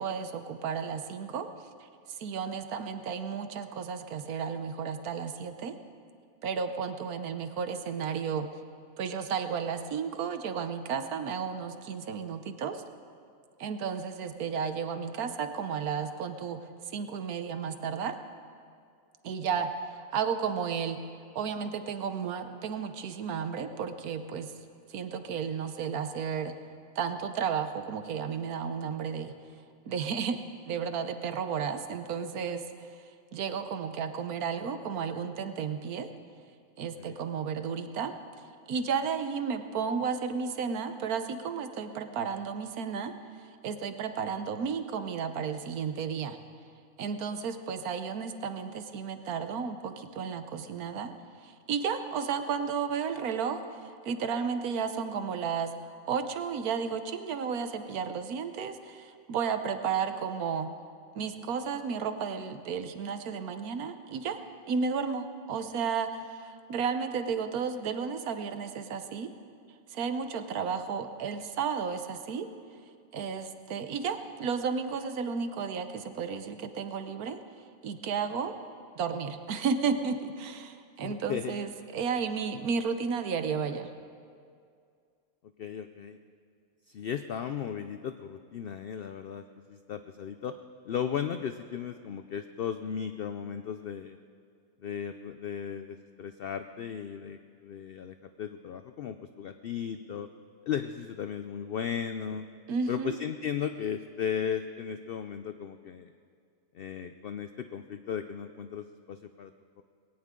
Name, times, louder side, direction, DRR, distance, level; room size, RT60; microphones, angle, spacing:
voice 1, 0.0-1.5 2.2-5.7 6.4-8.5 9.0-12.8 13.6-16.6 16.9-18.2 19.2-21.0 21.3-24.5 24.9-26.5 27.0-29.3 29.9-32.6 33.3-36.1 36.8-38.1 38.7-43.1 43.4-46.4 47.0-51.1 51.4-55.7 56.1-60.7 61.1-64.4 64.7-69.3 69.9-72.5 73.1-77.4 77.8-78.5 78.9-83.9 102.7-103.2, right 6 dB, 85° right, 9 dB, 1.4 m, -33 dB
voice 2, 81.0-81.6 85.6-86.2 86.9-89.4 89.7-90.5 90.8-94.2 94.8-100.3 100.7-102.5 102.9-106.1 106.7-109.5 109.8-109.9, left 8 dB, 70° left, 9 dB, 0.5 m, -36 dB
20.5 x 17.5 x 3.7 m, 2.3 s
omnidirectional pair, 1.5 m